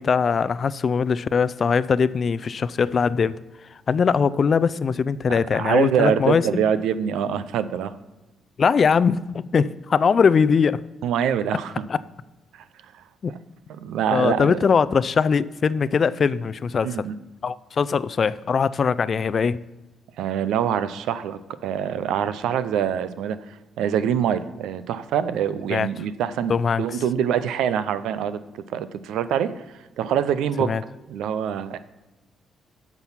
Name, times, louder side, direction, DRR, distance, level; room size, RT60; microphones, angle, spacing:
voice 1, 0.0-3.3 3.9-6.7 8.6-10.8 11.9-12.0 13.2-13.3 14.1-17.1 17.4-19.6 25.7-25.9 26.5-27.0 30.6-30.8, left 6 dB, 45° left, 16 dB, 0.3 m, -21 dB
voice 2, 5.3-7.9 11.0-11.8 13.3-13.4 13.8-14.6 16.8-17.1 20.2-23.4 23.8-26.5 26.8-28.4 28.7-29.6 30.0-30.7 31.1-31.8, right 9 dB, 85° right, 14 dB, 0.5 m, -24 dB
8.9 x 6.1 x 5.7 m, 1.1 s
cardioid pair, 90°, 0 cm